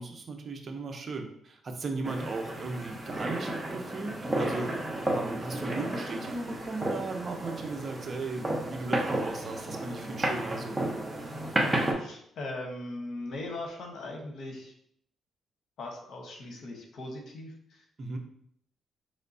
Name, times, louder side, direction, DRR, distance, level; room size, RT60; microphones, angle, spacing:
voice 1, 0.0-4.7 5.1-10.8 18.0-18.2, right 3 dB, 45° right, 4 dB, 0.7 m, -36 dB
sound 1, 2.0-11.9, right 1 dB, 15° right, 0.9 m, -32 dB
voice 2, 11.6-14.7 15.8-17.8, left 2 dB, 70° left, 1 dB, 1.0 m, -39 dB
5.4 x 3.2 x 2.7 m, 0.68 s
cardioid pair, 90°, 0 cm